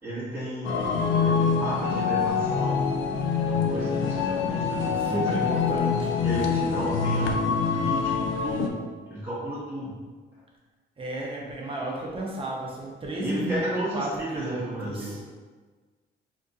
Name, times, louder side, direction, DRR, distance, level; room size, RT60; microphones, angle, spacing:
voice 1, 0.0-2.9 3.4-5.2 6.1-8.7 9.1-10.0 13.2-15.2, right 1 dB, 10° right, -10 dB, 1.3 m, -33 dB
sound 1, 0.6-8.7, left 5 dB, 75° left, 0.4 m, -25 dB
voice 2, 4.9-6.3 6.6-7.1 11.0-15.2, right 1 dB, 25° right, -3 dB, 0.9 m, -33 dB
2.7 x 2.6 x 3.6 m, 1.4 s
cardioid pair, 90°, 20 cm